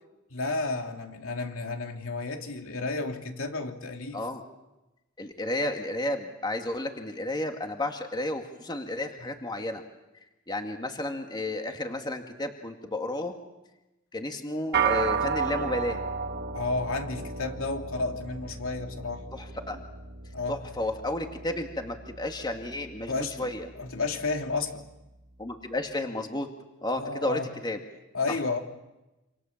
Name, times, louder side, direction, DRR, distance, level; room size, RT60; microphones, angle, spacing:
voice 1, 0.3-4.2 16.5-19.3 20.3-20.6 23.1-23.5 23.7-24.9 27.0-27.5 28.1-28.6, left 3 dB, 70° left, 4 dB, 3.0 m, -32 dB
voice 2, 5.2-9.8 10.5-13.3 14.1-16.0 19.3-19.8 20.5-23.1 23.4-23.7 25.4-26.5 26.8-27.8, left 1 dB, 20° left, 4 dB, 2.1 m, -32 dB
sound 1, 14.7-24.3, right 6 dB, 50° right, 1.2 m, -34 dB
27.5 x 27.0 x 7.3 m, 1.0 s
head